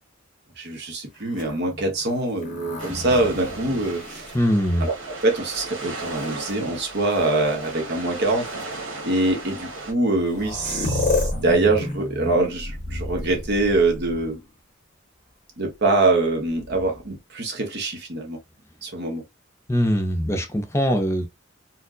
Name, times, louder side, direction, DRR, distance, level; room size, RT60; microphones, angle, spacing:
voice 1, 0.6-4.3 4.8-4.9 5.2-14.4 15.6-18.4 18.8-19.2, right 2 dB, 55° right, 1.1 m, -24 dB
sound 1, 1.3-5.1 5.8-6.5 7.6-7.7 8.5-8.6 9.8-9.9 10.1-14.5 16.5-17.2, left 2 dB, 40° left, 0.8 m, -31 dB
sound 2, 2.8-9.9, right 3 dB, 75° right, 1.2 m, -36 dB
voice 2, 4.3-4.9 19.7-21.3, equal, 15° left, 0.4 m, -22 dB
4.3 x 2.0 x 2.5 m
head